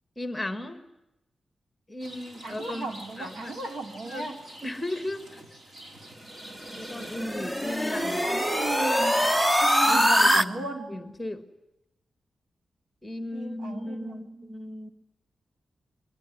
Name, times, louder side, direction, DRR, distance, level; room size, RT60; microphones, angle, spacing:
voice 1, 0.2-0.8 1.9-2.9 3.2-3.5 4.0-4.2 4.6-5.4 6.8-8.3 9.9-11.5 13.0-14.9, left 1 dB, 10° left, 9 dB, 1.7 m, -36 dB
Rain, 2.0-7.2, right 1 dB, 45° right, 4.7 m, -47 dB
voice 2, 2.4-4.4 7.9-9.3 9.6-10.9 13.3-14.5, right 3 dB, 80° right, 5 dB, 3.3 m, -36 dB
sound 1, 6.5-10.4, equal, 5° right, 0.9 m, -23 dB
22.5 x 21.5 x 9.4 m, 0.91 s
wide cardioid pair, 150°, 0 cm